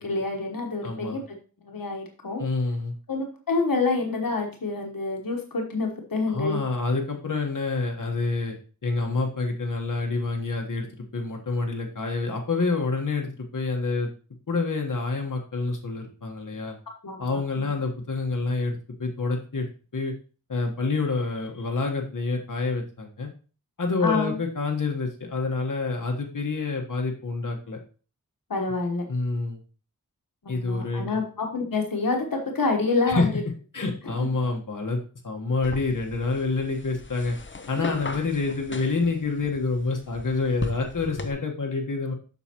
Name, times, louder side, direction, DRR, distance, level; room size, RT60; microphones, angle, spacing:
voice 1, 0.0-1.4 1.6-2.4 3.1-6.6 17.0-17.7 24.0-24.4 28.5-29.1 30.4-33.4 34.1-34.3, left 3 dB, 85° left, 2 dB, 1.2 m, -27 dB
voice 2, 0.8-1.2 2.4-2.9 6.3-8.5 8.8-14.1 14.5-16.7 17.2-20.1 20.5-23.3 23.8-27.8 29.1-29.6 30.5-31.2 33.1-33.3 33.7-37.4 37.7-42.1, left 3 dB, 70° left, 2 dB, 1.3 m, -27 dB
sound 1, 35.6-41.3, left 3 dB, 35° left, 0.7 m, -37 dB
7.9 x 6.3 x 2.9 m, 0.36 s
wide cardioid pair, 65°, 33 cm